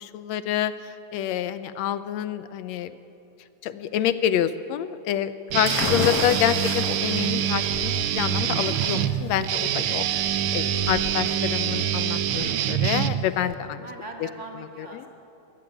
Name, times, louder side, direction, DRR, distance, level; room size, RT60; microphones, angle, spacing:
voice 1, 0.0-2.9 3.6-10.1 10.5-13.9 14.9-15.0, left 10 dB, 75° left, 13 dB, 1.8 m, -27 dB
voice 2, 5.5-5.9 10.8-11.2 13.8-15.1, right 2 dB, 25° right, 2 dB, 2.0 m, -42 dB
Guitar, 5.5-13.5, right 10 dB, 80° right, 1.2 m, -25 dB
sound 1, 5.7-13.1, left 6 dB, 55° left, 1.2 m, -34 dB
22.0 x 16.0 x 8.9 m, 2.8 s
omnidirectional pair, 3.3 m